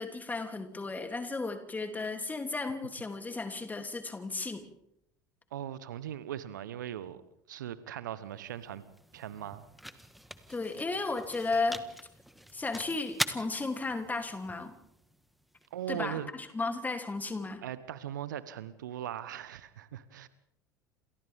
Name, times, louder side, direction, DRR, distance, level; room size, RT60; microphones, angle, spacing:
voice 1, 0.0-4.7 10.5-11.9 12.5-14.7 15.9-17.6, left 3 dB, 15° left, 3.1 m, -34 dB
voice 2, 5.5-7.2 7.5-8.8 9.1-9.7 15.7-16.3 17.6-20.3, right 11 dB, 70° right, 1.3 m, -39 dB
sound 1, 8.2-16.3, equal, ahead, 1.7 m, -43 dB
29.0 x 28.0 x 3.7 m
figure-of-eight pair, 70°, 10 cm